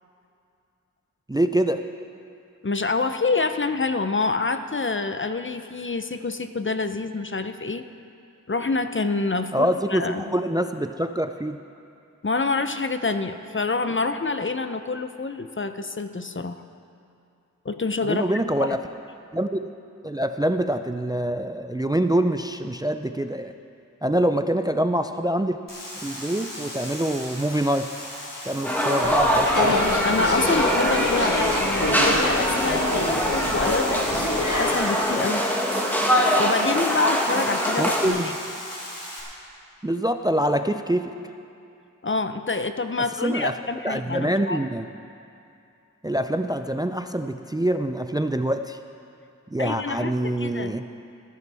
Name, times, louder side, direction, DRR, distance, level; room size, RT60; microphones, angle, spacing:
voice 1, 1.3-1.8 9.5-11.6 18.1-18.8 19.3-19.7 20.0-23.5 24.0-25.6 26.0-27.9 28.4-30.0 37.8-38.3 39.8-41.1 43.2-43.5 43.8-44.9 46.0-48.8 49.5-50.8, right 1 dB, 10° right, 8 dB, 0.4 m, -25 dB
voice 2, 2.6-7.8 8.5-10.3 12.2-16.6 17.6-18.3 30.0-34.3 34.6-35.4 36.4-38.3 42.0-44.6 49.6-50.7, left 3 dB, 40° left, 9 dB, 0.6 m, -27 dB
sound 1, 25.7-39.2, left 1 dB, 85° left, 2.9 m, -37 dB
sound 2, 28.6-38.1, equal, 5° left, 1.7 m, -23 dB
sound 3, 29.0-34.8, left 1 dB, 65° left, 1.6 m, -26 dB
19.0 x 11.0 x 3.4 m, 2.6 s
wide cardioid pair, 40°, 32 cm